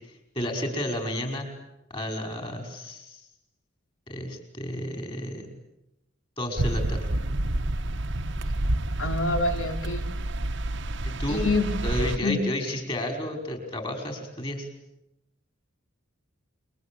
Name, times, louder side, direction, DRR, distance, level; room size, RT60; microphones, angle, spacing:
voice 1, 0.3-1.5 1.9-3.2 4.1-5.5 6.4-7.0 11.2-11.5 11.8-14.7, left 1 dB, 25° left, 5 dB, 5.6 m, -31 dB
sound 1, 6.6-12.2, right 1 dB, 60° right, 1.3 m, -29 dB
voice 2, 9.0-10.1 11.3-11.7 12.2-12.4, left 2 dB, 70° left, 5 dB, 3.8 m, -26 dB
28.0 x 24.0 x 8.7 m, 0.90 s
head